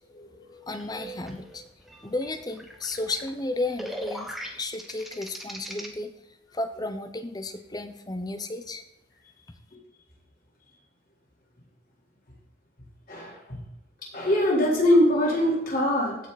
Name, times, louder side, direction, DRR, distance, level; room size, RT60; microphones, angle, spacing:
voice 1, 0.1-0.7 13.1-13.6 14.0-16.2, left 1 dB, 45° left, -3 dB, 4.0 m, -23 dB
voice 2, 0.7-1.6 2.0-6.1 6.5-8.8, left 2 dB, 20° left, 8 dB, 0.8 m, -33 dB
sound 1, 0.7-5.9, equal, ahead, 1.2 m, -40 dB
16.0 x 6.0 x 4.2 m, 0.86 s
head